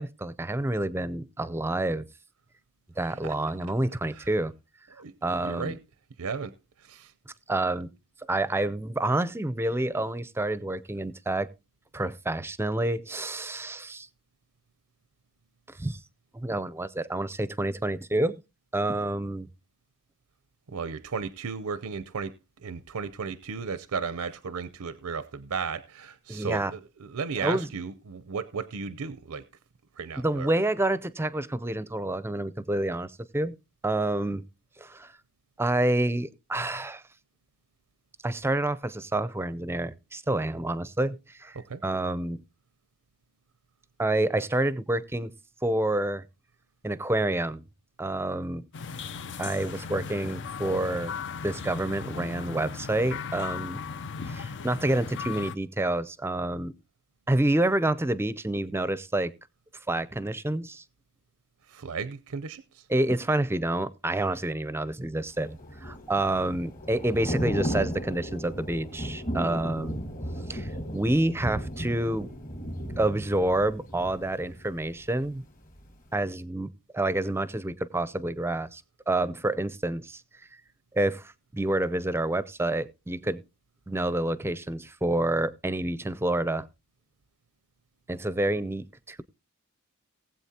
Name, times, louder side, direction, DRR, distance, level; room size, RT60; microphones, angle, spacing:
voice 1, 0.0-2.0 3.0-4.5 5.2-5.8 7.5-7.9 8.3-11.5 11.9-14.1 15.8-16.0 16.3-18.4 18.7-19.5 26.3-26.7 27.4-27.7 30.2-33.5 33.8-34.4 34.8-35.1 35.6-37.0 38.2-42.4 44.0-45.3 45.6-46.2 46.8-47.6 48.0-48.6 49.4-51.1 51.4-53.8 54.2-56.7 57.3-59.3 59.9-60.8 62.9-70.0 70.5-72.3 73.0-75.4 76.1-80.2 80.9-83.4 83.9-86.7 88.1-89.2, right 1 dB, 10° right, 0.6 m, -28 dB
voice 2, 3.0-3.4 4.1-4.3 5.0-5.8 6.2-7.1 20.7-29.4 30.0-30.5 41.6-41.8 61.7-62.9, right 5 dB, 75° right, 0.6 m, -35 dB
sound 1, 48.7-55.5, left 6 dB, 55° left, 0.6 m, -37 dB
Thunder / Rain, 65.4-75.3 75.6-75.9, equal, 35° left, 1.8 m, -35 dB
19.0 x 7.9 x 2.8 m
head